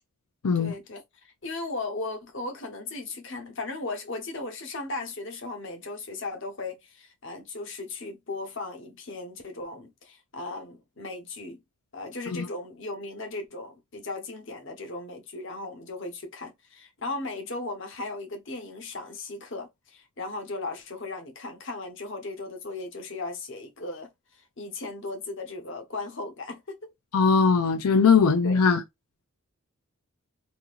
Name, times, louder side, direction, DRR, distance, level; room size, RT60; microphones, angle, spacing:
voice 1, 0.5-11.6 11.9-26.8 28.4-28.6, left 2 dB, 55° left, 1.0 m, -37 dB
voice 2, 27.1-28.8, left 5 dB, 85° left, 0.5 m, -20 dB
4.1 x 2.8 x 2.5 m
head